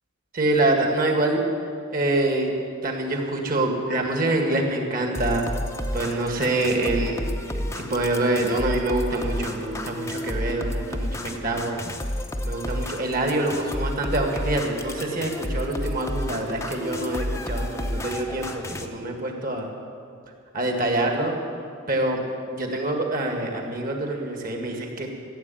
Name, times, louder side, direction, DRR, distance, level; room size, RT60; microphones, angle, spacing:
voice 1, 0.3-1.4 1.9-2.5 2.8-5.5 5.9-11.8 12.4-19.7 20.5-21.3 21.9-25.1, right 2 dB, 40° right, 2 dB, 1.9 m, -25 dB
sound 1, 5.1-18.9, left 1 dB, 15° left, 0.7 m, -31 dB
14.5 x 8.0 x 9.2 m, 2.3 s
head